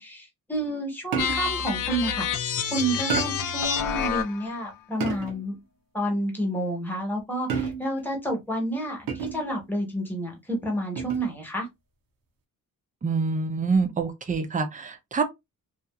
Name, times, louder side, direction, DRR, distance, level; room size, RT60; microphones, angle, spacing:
voice 1, 0.0-2.3 2.7-5.6 5.9-11.7, right 1 dB, 5° left, 0.9 m, -30 dB
sound 1, 1.1-1.6 3.1-3.6 5.0-5.5 7.5-8.1 9.1-9.5 11.0-11.3, right 6 dB, 85° right, 0.7 m, -30 dB
sound 2, 1.2-4.5, left 7 dB, 80° left, 0.5 m, -28 dB
voice 2, 13.0-15.2, right 4 dB, 25° right, 0.4 m, -26 dB
2.8 x 2.3 x 2.3 m
wide cardioid pair, 150°, 33 cm